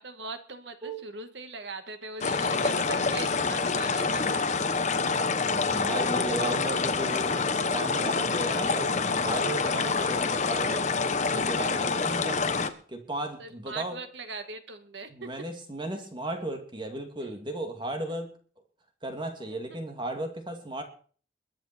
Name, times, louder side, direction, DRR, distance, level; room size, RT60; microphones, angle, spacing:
voice 1, 0.0-4.5 5.8-5.9 13.4-15.3 19.5-19.6, right 3 dB, 70° right, 8 dB, 2.1 m, -40 dB
sound 1, 2.2-12.7, left 4 dB, 40° left, 1.1 m, -27 dB
voice 2, 5.4-7.4 7.7-10.8 11.1-12.5 12.9-14.0 15.1-18.3 19.0-20.8, right 1 dB, 25° right, 5 dB, 2.5 m, -35 dB
22.0 x 9.2 x 4.4 m, 0.42 s
head